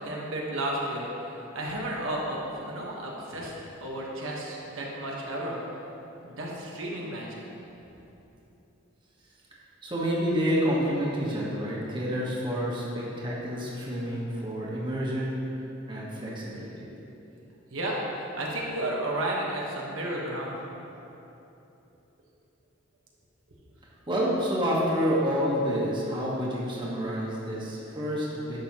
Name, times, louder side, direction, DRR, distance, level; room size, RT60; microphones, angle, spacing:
voice 1, 0.0-3.5 3.8-5.6 6.2-7.4 17.7-20.6, right 1 dB, 75° right, -3 dB, 1.1 m, -32 dB
voice 2, 9.8-15.4 15.9-16.8 24.1-28.6, equal, 25° right, -6 dB, 1.3 m, -28 dB
10.5 x 6.5 x 2.9 m, 3.0 s
head